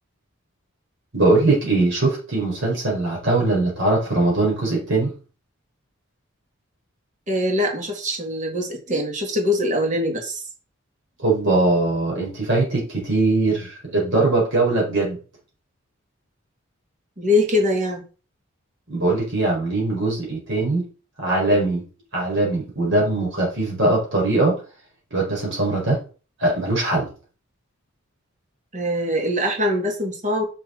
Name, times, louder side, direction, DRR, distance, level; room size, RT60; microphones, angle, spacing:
voice 1, 1.1-5.1 11.2-15.2 18.9-20.8 21.2-21.8 22.1-24.6 25.1-26.0 26.4-27.1, right 2 dB, 60° right, -3 dB, 4.6 m, -21 dB
voice 2, 7.3-10.4 17.2-18.0 28.7-30.4, left 1 dB, 40° right, 2 dB, 2.3 m, -23 dB
6.7 x 6.7 x 4.5 m, 0.36 s
head